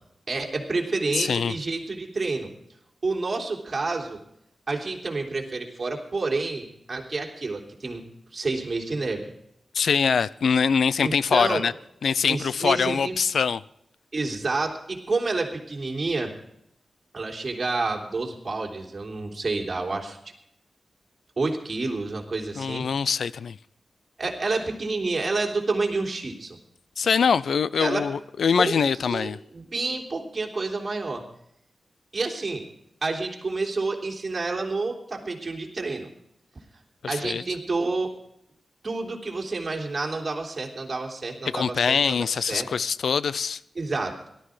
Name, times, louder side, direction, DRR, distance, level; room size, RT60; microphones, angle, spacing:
voice 1, 0.3-2.5 3.0-4.2 4.7-8.0 8.3-9.3 11.0-11.7 12.3-13.2 14.1-16.3 17.1-20.2 21.4-22.8 24.2-26.6 27.8-28.1 28.6-31.2 32.1-32.6 33.0-36.1 37.1-38.1 38.8-42.2 42.5-42.7 43.7-44.2, right 3 dB, 40° right, 3.3 m, -29 dB
voice 2, 1.1-1.5 9.7-11.7 12.0-13.6 22.6-23.6 27.0-29.4 37.0-37.4 41.5-43.6, left 6 dB, 85° left, 0.5 m, -23 dB
18.0 x 12.5 x 5.0 m
wide cardioid pair, 90°, 0 cm